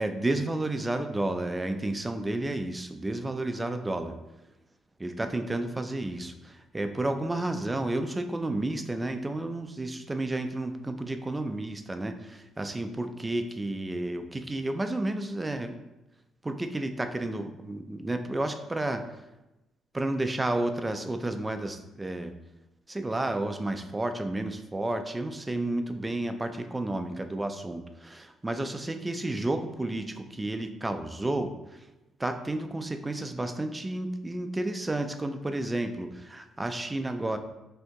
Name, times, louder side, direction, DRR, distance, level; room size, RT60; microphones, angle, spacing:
voice 1, 0.0-4.1 5.0-15.8 16.4-19.0 19.9-22.3 22.9-31.5 32.2-37.4, right 2 dB, 15° right, 7 dB, 0.3 m, -31 dB
2.8 x 2.6 x 3.5 m, 0.99 s
cardioid pair, 90°, 0 cm